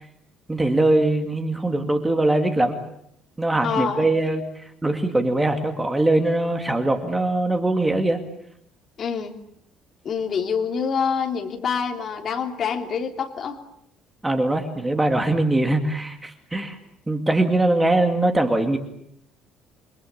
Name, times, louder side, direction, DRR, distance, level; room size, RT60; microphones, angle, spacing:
voice 1, 0.5-2.8 3.4-8.2 14.2-16.8 17.1-18.8, right 2 dB, 10° right, 5 dB, 2.3 m, -22 dB
voice 2, 3.6-4.1 9.0-9.4 10.0-13.6, left 6 dB, 35° left, 3 dB, 3.2 m, -26 dB
29.0 x 23.0 x 8.7 m, 0.71 s
cardioid pair, 165°, 0 cm